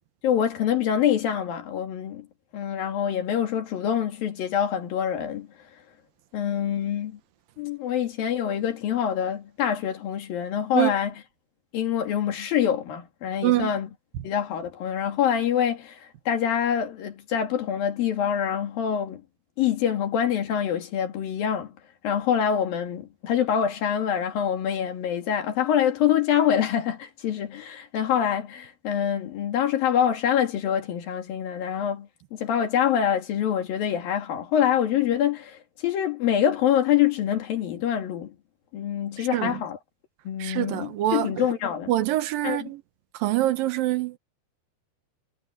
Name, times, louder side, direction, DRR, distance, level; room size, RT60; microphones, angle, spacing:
voice 1, 0.2-2.3 2.5-5.5 6.3-7.2 7.6-11.1 11.7-13.9 14.2-19.2 19.6-21.7 22.0-38.4 38.7-39.8 40.3-41.9 42.4-42.7, left 9 dB, 65° left, 3.9 m, -25 dB
voice 2, 39.3-39.6 40.4-41.5 41.9-42.8 43.1-44.2, right 15 dB, 70° right, 2.5 m, -25 dB
omnidirectional pair, 4.6 m